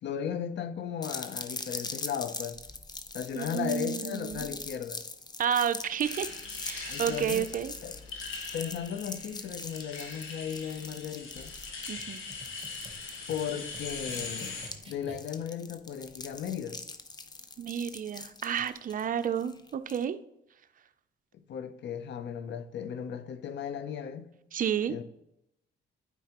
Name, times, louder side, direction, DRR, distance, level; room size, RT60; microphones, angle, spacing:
voice 1, 0.0-2.6 3.1-5.0 6.9-7.5 7.8-8.0 8.5-11.6 13.3-14.6 14.8-16.8 21.3-24.3 24.9-25.0, left 8 dB, 65° left, 0.6 m, -36 dB
sound 1, 1.0-20.0, left 3 dB, 20° left, 0.6 m, -42 dB
voice 2, 3.3-4.5 5.4-6.3 6.6-7.7 11.9-12.2 17.6-20.2 24.5-24.9, right 8 dB, 45° right, 0.5 m, -31 dB
sound 2, 6.0-14.7, left 4 dB, 80° left, 1.5 m, -41 dB
sound 3, 12.0-15.6, right 3 dB, 30° right, 1.0 m, -51 dB
9.1 x 4.6 x 2.9 m
cardioid pair, 90°, 20 cm